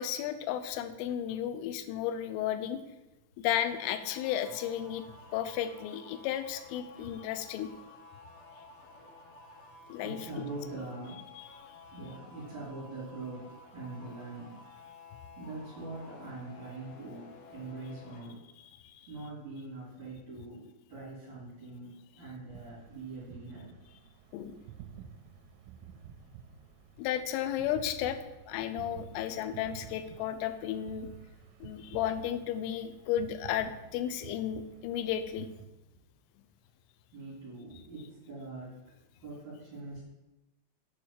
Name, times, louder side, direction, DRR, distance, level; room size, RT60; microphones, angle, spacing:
voice 1, 0.0-2.8 3.4-5.0 5.3-7.7 9.9-10.2 11.4-11.5 18.9-19.1 24.3-24.5 27.0-28.2 28.5-31.1 31.6-35.5, left 10 dB, 90° left, 10 dB, 3.2 m, -33 dB
sound 1, 3.7-18.3, left 3 dB, 70° left, 3.4 m, -53 dB
voice 2, 10.0-11.2 11.9-14.5 15.4-18.4 19.1-23.7 37.1-38.8 39.2-40.0, right 2 dB, 40° right, -9 dB, 4.0 m, -43 dB
sound 2, 22.5-35.7, right 8 dB, 90° right, 3.2 m, -51 dB
8.4 x 4.7 x 7.3 m, 0.98 s
omnidirectional pair, 5.6 m